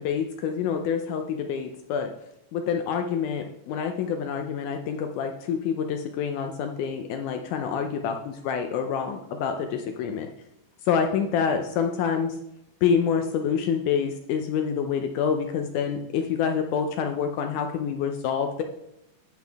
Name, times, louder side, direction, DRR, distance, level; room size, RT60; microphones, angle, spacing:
voice 1, 0.0-2.1 2.5-10.3 10.9-12.4 12.8-18.6, left 7 dB, 80° left, 5 dB, 1.9 m, -27 dB
9.4 x 7.5 x 3.5 m, 0.83 s
omnidirectional pair, 4.0 m